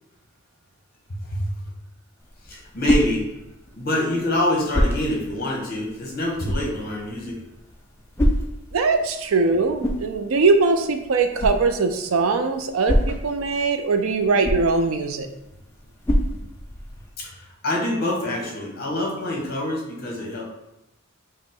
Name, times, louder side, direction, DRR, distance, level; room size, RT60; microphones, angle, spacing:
sound 1, 2.2-17.1, equal, 10° left, 0.4 m, -28 dB
voice 1, 2.4-3.2 3.7-7.4 17.2-20.4, left 1 dB, 50° left, -2 dB, 1.1 m, -26 dB
voice 2, 8.7-15.3, right 4 dB, 85° right, 7 dB, 0.4 m, -21 dB
4.9 x 2.1 x 3.7 m, 0.90 s
head